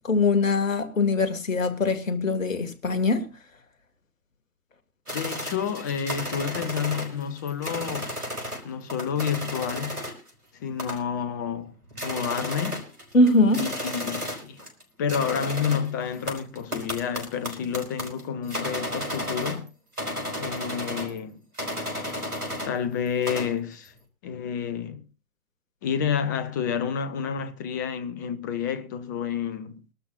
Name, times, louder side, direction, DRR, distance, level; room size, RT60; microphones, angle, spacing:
voice 1, 0.0-3.3 13.1-13.7, left 2 dB, 60° left, 2.4 m, -22 dB
voice 2, 5.1-8.1 8.6-10.0 10.5-11.7 12.0-12.8 13.5-14.6 15.0-19.7 20.4-21.4 22.6-23.9 24.2-25.0 25.8-29.8, left 7 dB, 15° left, 0.6 m, -29 dB
sound 1, 5.1-8.6 8.9-10.3 10.8-11.2 11.6-11.7 11.9-14.8 15.1-19.7 20.0-21.2 21.6-22.8 23.1-23.6, equal, 90° right, 5.0 m, -33 dB
23.5 x 12.5 x 2.6 m
figure-of-eight pair, 130°, 44 cm